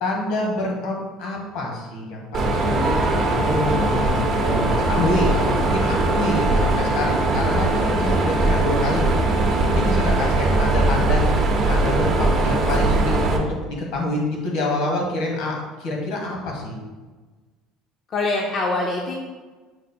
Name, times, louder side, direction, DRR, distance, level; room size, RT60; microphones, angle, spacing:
voice 1, 0.0-9.1 9.6-11.2 11.7-13.4 13.9-15.5 15.8-16.8, left 1 dB, 70° left, -1 dB, 1.2 m, -26 dB
Mechanisms, 2.3-13.4, right 2 dB, 45° right, 0.6 m, -20 dB
voice 2, 18.1-19.1, left 2 dB, 40° left, 0 dB, 0.5 m, -24 dB
5.1 x 2.0 x 4.2 m, 1.3 s
cardioid pair, 125°, 0 cm